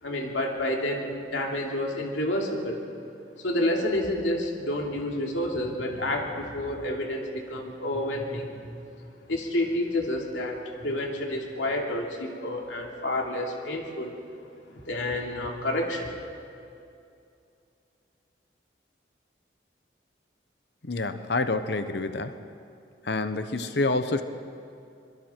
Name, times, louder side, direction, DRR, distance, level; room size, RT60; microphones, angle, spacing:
voice 1, 0.0-2.8 3.4-8.6 9.3-14.1 14.7-16.1, left 1 dB, 85° left, 0 dB, 3.0 m, -29 dB
voice 2, 20.8-22.4 23.0-24.2, left 2 dB, 65° left, 10 dB, 1.0 m, -27 dB
25.0 x 22.5 x 4.6 m, 2.5 s
head